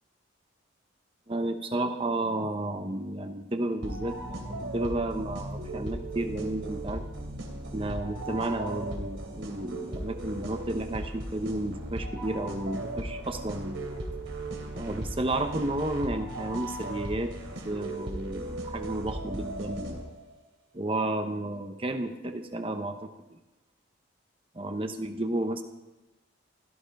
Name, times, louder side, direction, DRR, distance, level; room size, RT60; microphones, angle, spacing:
voice 1, 1.3-7.0 7.7-13.8 14.7-17.3 17.6-20.0 20.7-23.4 24.5-25.6, right 1 dB, 25° right, 7 dB, 0.8 m, -32 dB
sound 1, 3.8-20.3, right 1 dB, 70° right, 3.2 m, -37 dB
17.0 x 12.5 x 5.3 m, 1.1 s
head